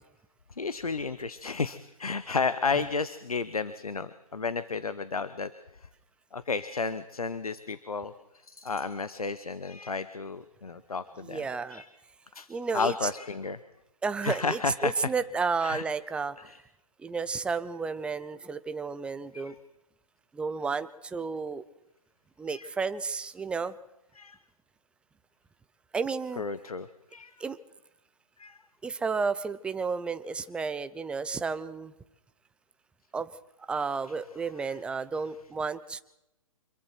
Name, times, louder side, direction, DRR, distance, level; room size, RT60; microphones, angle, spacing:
voice 1, 0.6-5.5 6.3-8.1 8.4-11.4 11.7-11.9 12.3-12.5 12.7-13.6 14.2-14.9 15.6-15.8 16.4-16.6 19.3-19.5 22.5-22.7 24.2-24.4 26.4-27.3 28.4-28.6 34.6-34.7, left 4 dB, 85° left, 13 dB, 1.1 m, -32 dB
voice 2, 11.2-11.8 12.5-13.1 14.0-16.4 17.0-19.5 20.3-21.6 22.4-23.8 25.9-26.4 27.4-27.6 28.8-31.9 33.1-33.3 33.7-36.0, right 5 dB, 5° right, 13 dB, 0.6 m, -32 dB
26.0 x 22.5 x 4.5 m, 0.91 s
figure-of-eight pair, 135°, 18 cm